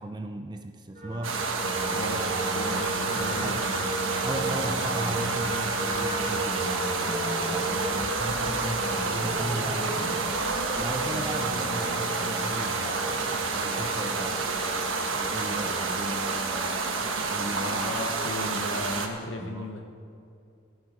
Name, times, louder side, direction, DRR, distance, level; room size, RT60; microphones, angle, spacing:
voice 1, 0.0-1.4 3.2-3.7 4.2-6.9 7.5-10.4 10.8-14.6 15.1-18.0 18.5-19.0 19.4-19.7, right 1 dB, 20° right, 6 dB, 0.5 m, -36 dB
sound 1, 1.0-17.2, right 1 dB, 40° right, 3.4 m, -34 dB
sound 2, 1.2-19.1, right 4 dB, 80° right, 1.2 m, -29 dB
voice 2, 1.9-3.6 7.6-7.9 17.6-19.8, left 1 dB, 70° left, 3 dB, 0.9 m, -36 dB
13.5 x 11.5 x 5.0 m, 2.5 s
head